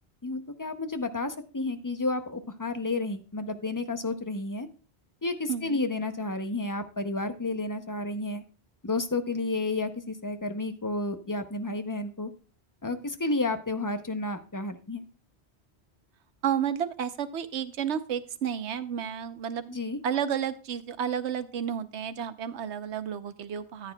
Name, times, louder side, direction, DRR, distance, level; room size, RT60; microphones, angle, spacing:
voice 1, 0.2-4.7 5.2-8.4 8.8-12.3 12.8-15.0 19.7-20.0, left 2 dB, 20° left, 9 dB, 0.6 m, -31 dB
voice 2, 5.5-5.8 16.4-19.8 20.0-23.9, right 8 dB, 90° right, 12 dB, 1.0 m, -31 dB
13.5 x 9.1 x 2.2 m, 0.36 s
omnidirectional pair, 1.1 m